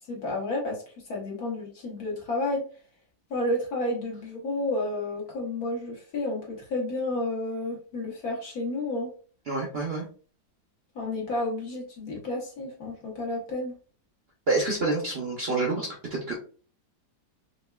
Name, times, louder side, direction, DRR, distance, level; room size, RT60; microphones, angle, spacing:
voice 1, 0.1-2.6 3.3-9.1 10.9-13.7, left 2 dB, 65° left, -3 dB, 1.8 m, -31 dB
voice 2, 9.5-10.1 14.5-16.4, right 2 dB, 50° right, -1 dB, 0.8 m, -28 dB
5.2 x 2.2 x 2.2 m, 0.40 s
omnidirectional pair, 1.8 m